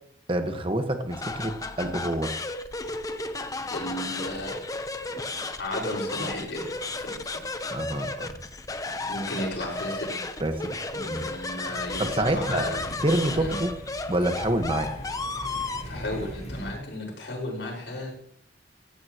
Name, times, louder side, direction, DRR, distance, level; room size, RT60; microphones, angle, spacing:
voice 1, 0.3-2.3 7.7-8.3 10.4-10.7 11.0-11.2 12.0-12.7 13.0-13.7 14.1-14.9, right 1 dB, 30° right, 6 dB, 1.5 m, -27 dB
sound 1, 1.1-15.8, left 3 dB, 20° left, 0.9 m, -34 dB
voice 2, 3.7-4.6 5.0-5.1 5.6-7.4 9.0-10.2 10.9-12.9 13.4-13.5 15.9-18.1, left 1 dB, 85° left, -1 dB, 5.7 m, -34 dB
sound 2, 11.7-16.7, equal, 40° left, 5.4 m, -40 dB
16.5 x 15.5 x 3.1 m, 0.66 s
head